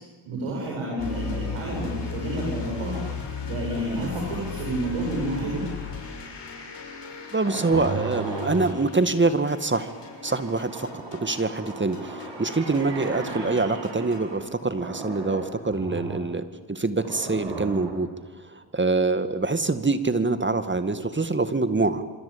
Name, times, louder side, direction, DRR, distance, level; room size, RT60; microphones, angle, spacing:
voice 1, 0.3-3.0 3.4-5.6, right 1 dB, 80° right, -3 dB, 8.0 m, -29 dB
sound 1, 1.0-14.4, left 6 dB, 55° left, 7.5 m, -37 dB
voice 2, 7.3-9.9 10.2-22.0, right 3 dB, 20° right, 11 dB, 2.1 m, -25 dB
sound 2, 7.4-14.5 14.8-16.3 17.0-18.2, right 3 dB, 60° right, 7.3 m, -36 dB
26.0 x 25.0 x 8.9 m, 1.3 s
supercardioid pair, 55°, 50 cm